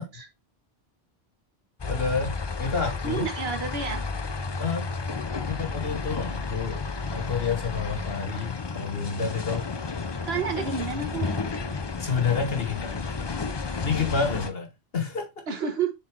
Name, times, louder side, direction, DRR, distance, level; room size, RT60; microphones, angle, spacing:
sound 1, 1.8-14.5, left 4 dB, 30° left, 0.5 m, -32 dB
voice 1, 1.9-3.3 4.6-4.9 5.4-6.8 7.1-9.7 12.0-13.0 13.8-15.4, left 5 dB, 65° left, 1.5 m, -29 dB
voice 2, 3.0-4.0 10.2-11.4 15.5-15.9, right 6 dB, 70° right, 1.4 m, -30 dB
7.3 x 4.0 x 3.2 m
omnidirectional pair, 1.1 m